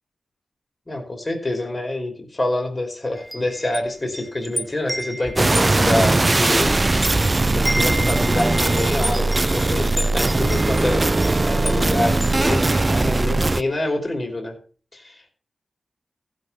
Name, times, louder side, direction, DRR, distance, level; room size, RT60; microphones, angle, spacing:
voice 1, 0.9-6.8 7.5-11.1 11.4-14.6 14.9-15.3, left 1 dB, 35° left, 2 dB, 3.1 m, -26 dB
Wind chime, 3.2-7.2 7.5-13.4, equal, ahead, 0.9 m, -32 dB
sound 1, 5.4-13.6, right 2 dB, 30° right, 0.5 m, -19 dB
15.0 x 6.1 x 6.7 m, 0.40 s
wide cardioid pair, 75°, 0 cm